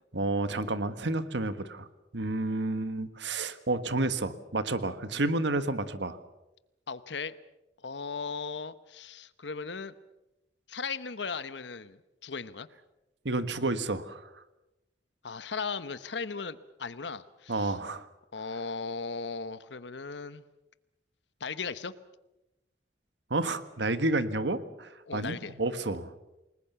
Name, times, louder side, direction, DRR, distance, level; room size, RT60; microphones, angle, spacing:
voice 1, 0.1-1.9 2.1-6.2 13.2-14.2 17.5-18.1 23.3-26.1, right 2 dB, 80° right, 12 dB, 1.5 m, -30 dB
voice 2, 6.9-7.3 7.8-9.9 10.7-12.7 15.2-17.8 18.3-20.4 21.4-21.9 25.1-25.5, left 5 dB, 80° left, 14 dB, 1.1 m, -37 dB
29.0 x 20.0 x 6.9 m, 0.95 s
head